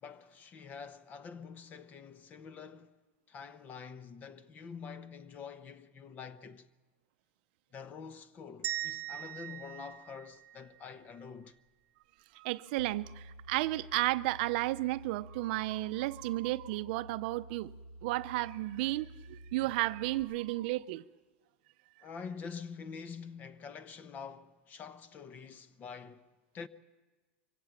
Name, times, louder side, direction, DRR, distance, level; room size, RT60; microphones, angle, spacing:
voice 1, 0.0-3.0 3.3-6.7 7.7-11.6 22.0-26.3 26.5-26.7, left 6 dB, 30° left, 0.8 m, -46 dB
sound 1, 8.6-10.9, right 13 dB, 35° right, 1.0 m, -40 dB
voice 2, 12.3-17.7 18.0-21.0, right 18 dB, 60° right, 0.6 m, -33 dB
sound 2, 12.8-20.2, right 1 dB, 85° left, 2.8 m, -51 dB
24.0 x 17.0 x 7.2 m
supercardioid pair, 140°, 6 cm